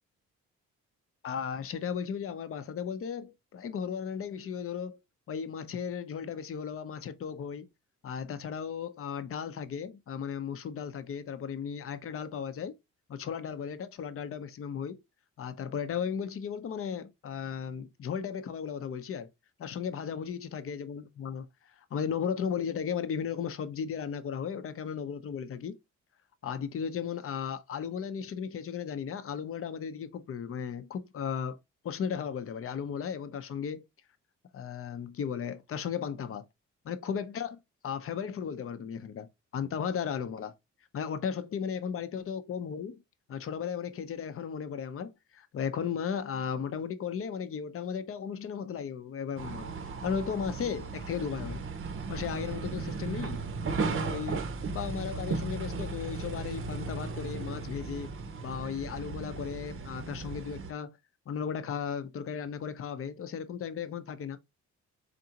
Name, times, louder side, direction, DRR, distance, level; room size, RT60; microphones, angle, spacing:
voice 1, 1.2-5.0 5.3-7.7 8.0-12.7 13.1-15.0 15.4-19.3 19.6-21.5 21.9-25.8 26.4-31.6 31.8-33.8 34.5-36.4 36.8-40.5 40.9-43.0 43.3-49.7 50.0-51.6 52.1-53.4 53.7-54.4 54.7-58.1 58.4-61.0 61.3-64.4, left 7 dB, 45° left, 0.7 m, -35 dB
sound 1, 49.4-60.7, right 4 dB, 45° right, 0.7 m, -36 dB
3.9 x 3.4 x 2.8 m
cardioid pair, 90°, 30 cm